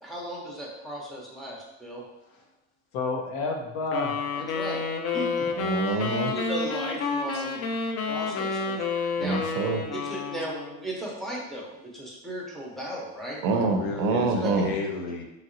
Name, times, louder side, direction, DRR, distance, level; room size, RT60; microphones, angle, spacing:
voice 1, 0.0-2.0 4.4-4.8 5.1-5.5 6.3-7.6 8.0-8.8 9.2-9.4 9.9-13.4 14.4-14.6, right 1 dB, ahead, -4 dB, 0.9 m, -36 dB
voice 2, 2.9-4.2 13.5-15.2, left 3 dB, 65° left, 1 dB, 0.8 m, -31 dB
sound 1, 3.9-10.9, left 4 dB, 40° left, 0.4 m, -30 dB
voice 3, 5.6-6.3 7.3-7.4 9.2-9.8 13.4-14.7, right 4 dB, 55° right, 5 dB, 0.5 m, -26 dB
2.9 x 2.7 x 2.7 m, 0.92 s
supercardioid pair, 105°, 39 cm